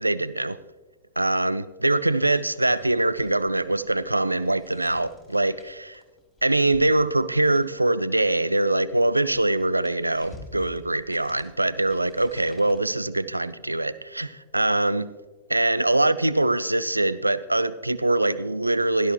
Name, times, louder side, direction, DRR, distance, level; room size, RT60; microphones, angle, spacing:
voice 1, 0.0-0.6 1.2-6.0 6.4-15.1 15.5-19.1, right 2 dB, 85° right, 0.4 m, -23 dB
sound 1, 2.2-8.0 8.8-12.8, left 2 dB, 15° left, 3.2 m, -50 dB
16.0 x 12.5 x 3.0 m
figure-of-eight pair, 90°, 0 cm